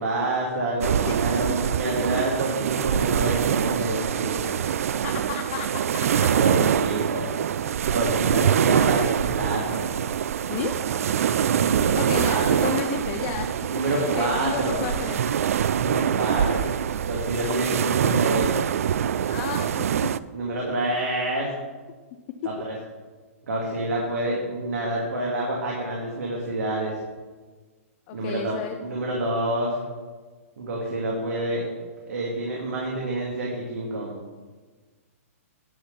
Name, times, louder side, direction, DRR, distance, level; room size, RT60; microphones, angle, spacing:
voice 1, 0.0-4.9 6.1-7.3 7.9-10.0 11.2-12.5 13.7-14.8 15.7-16.7 17.0-18.5 20.3-21.5 22.6-22.7 23.5-26.9 28.1-29.8 30.6-34.2, right 1 dB, 85° right, -3 dB, 2.2 m, -28 dB
sound 1, 0.8-20.2, right 9 dB, 70° right, 0.3 m, -24 dB
voice 2, 1.0-1.4 4.6-4.8 5.0-5.9 10.5-10.8 11.9-13.5 13.8-15.3 19.3-20.1 22.4-22.5 28.1-28.8, left 9 dB, 25° left, 5 dB, 0.5 m, -32 dB
9.2 x 5.8 x 6.7 m, 1.4 s
hypercardioid pair, 170°, 8 cm